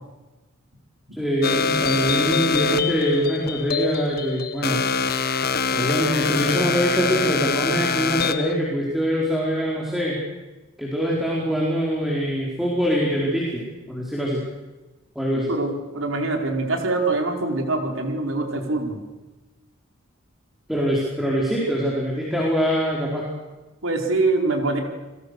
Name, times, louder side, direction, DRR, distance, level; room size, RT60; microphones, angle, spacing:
voice 1, 1.2-4.8 5.7-10.2 10.8-14.4 15.1-15.5 20.7-23.3, equal, ahead, -4 dB, 4.7 m, -24 dB
sound 1, 1.4-8.5, left 5 dB, 50° left, 1.2 m, -24 dB
voice 2, 15.5-19.0 23.8-24.8, right 3 dB, 75° right, 3 dB, 4.4 m, -24 dB
29.5 x 21.5 x 6.7 m, 1.2 s
head